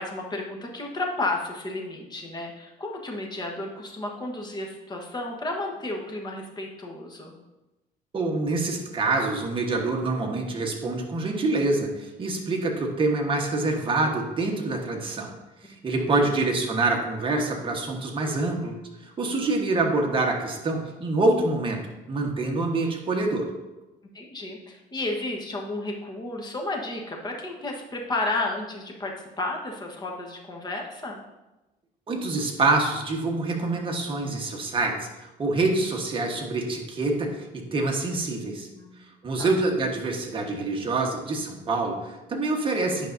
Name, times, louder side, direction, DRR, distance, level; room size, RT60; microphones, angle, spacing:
voice 1, 0.0-7.4 16.2-16.3 24.1-31.2 38.8-39.0 39.4-39.5, left 2 dB, 25° left, 1 dB, 1.2 m, -32 dB
voice 2, 8.1-15.3 15.6-21.8 22.1-23.5 32.1-38.7 39.2-43.1, right 2 dB, 30° right, 1 dB, 1.3 m, -26 dB
9.9 x 5.4 x 2.7 m, 1.0 s
cardioid pair, 110°, 17 cm